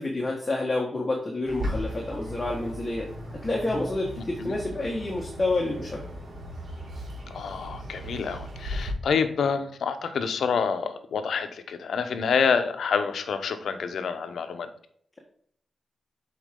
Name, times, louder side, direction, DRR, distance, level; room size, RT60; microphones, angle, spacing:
voice 1, 0.0-6.0, left 2 dB, 25° left, -1 dB, 1.5 m, -29 dB
Bird, 1.4-8.9, equal, 65° right, 3.2 m, -37 dB
voice 2, 7.3-14.7, left 6 dB, 80° left, 9 dB, 0.9 m, -27 dB
8.1 x 4.8 x 3.7 m, 0.63 s
wide cardioid pair, 110°, 0 cm